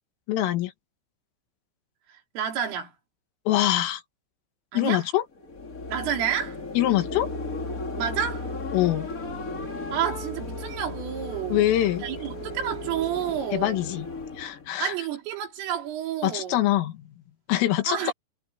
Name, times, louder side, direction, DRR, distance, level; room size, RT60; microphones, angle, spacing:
voice 1, 0.3-0.7 3.5-4.0 4.7-5.2 6.8-7.3 8.7-9.1 11.5-12.1 13.5-14.1 14.4-14.9 16.2-17.0 17.5-18.1, left 14 dB, 90° left, 4.4 m, -24 dB
voice 2, 2.1-2.9 4.7-5.0 5.9-6.6 8.0-8.4 9.9-11.7 12.0-13.8 14.8-16.6 17.9-18.1, right 9 dB, 85° right, 6.3 m, -30 dB
sound 1, 5.3-14.7, left 2 dB, 40° left, 1.1 m, -35 dB
omnidirectional pair, 5.7 m